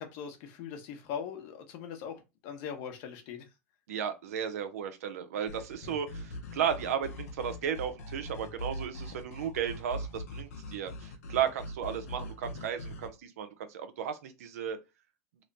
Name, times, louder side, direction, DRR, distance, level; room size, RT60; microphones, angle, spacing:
voice 1, 0.0-2.2 2.4-3.4, left 7 dB, 60° left, 0.9 m, -40 dB
voice 2, 3.9-14.8, right 8 dB, 90° right, 0.7 m, -34 dB
sound 1, 5.5-13.1, equal, 90° left, 0.7 m, -42 dB
3.1 x 2.1 x 3.9 m
supercardioid pair, 120°, 8 cm